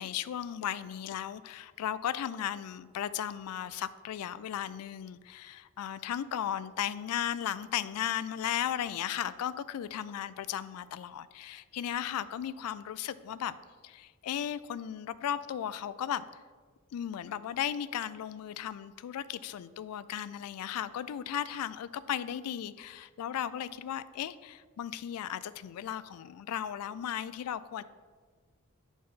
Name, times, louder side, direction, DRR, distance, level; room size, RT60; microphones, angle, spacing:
voice 1, 0.0-13.6 13.8-16.4 16.9-27.8, left 10 dB, 80° left, 16 dB, 0.3 m, -36 dB
9.5 x 4.1 x 3.7 m, 1.5 s
head